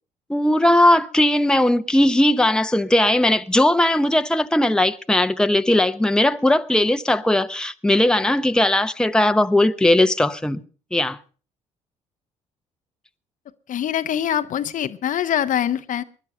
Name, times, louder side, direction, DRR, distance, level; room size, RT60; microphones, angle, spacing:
voice 1, 0.3-10.6 10.9-11.2, left 1 dB, 5° left, 0.9 m, -18 dB
voice 2, 13.7-16.0, left 10 dB, 55° left, 0.9 m, -24 dB
20.0 x 11.0 x 5.5 m
hypercardioid pair, 50°, 16 cm